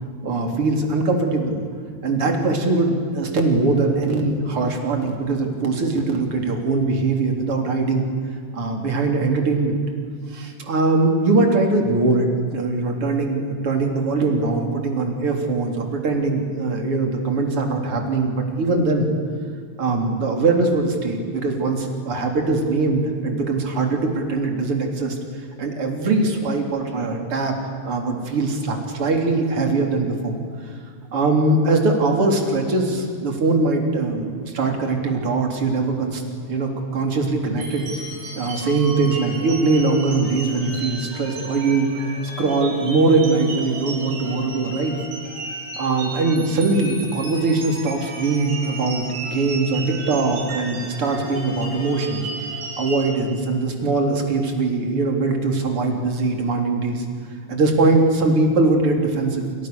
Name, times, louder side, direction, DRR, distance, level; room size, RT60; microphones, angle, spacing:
voice 1, 0.2-1.6 2.0-8.1 8.5-9.8 10.3-19.1 19.8-25.2 25.6-30.3 30.6-30.7 31.1-36.2 36.5-37.9 38.4-42.1 42.4-45.0 45.8-52.3 52.8-57.0 57.5-59.5, right 3 dB, 30° right, 3 dB, 3.7 m, -21 dB
sound 1, 37.6-53.1, right 3 dB, 65° right, 8.9 m, -34 dB
28.5 x 28.0 x 7.0 m, 2.2 s
omnidirectional pair, 5.7 m